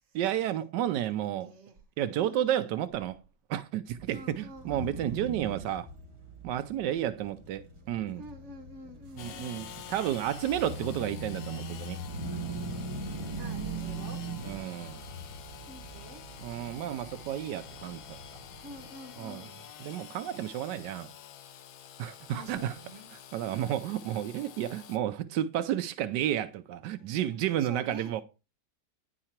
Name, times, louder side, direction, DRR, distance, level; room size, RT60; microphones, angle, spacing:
voice 1, 0.1-1.5 2.0-3.2 3.5-5.9 6.4-8.2 9.2-12.0 14.4-15.0 16.4-18.2 19.2-19.4 19.8-21.1 22.0-22.7 23.3-28.2, right 11 dB, 90° right, 1.2 m, -32 dB
voice 2, 1.4-1.7 2.1-2.7 4.1-5.2 7.7-9.7 13.3-14.2 15.7-16.3 18.6-19.7 22.3-23.1 26.9-27.2 27.6-28.2, equal, 45° right, 1.7 m, -48 dB
sound 1, 3.9-18.9, right 3 dB, 20° right, 0.9 m, -41 dB
sound 2, 9.0-21.0, right 1 dB, 65° right, 1.8 m, -56 dB
Engine / Sawing, 9.2-25.0, left 10 dB, 70° left, 1.2 m, -48 dB
10.0 x 4.8 x 4.4 m
omnidirectional pair, 1.8 m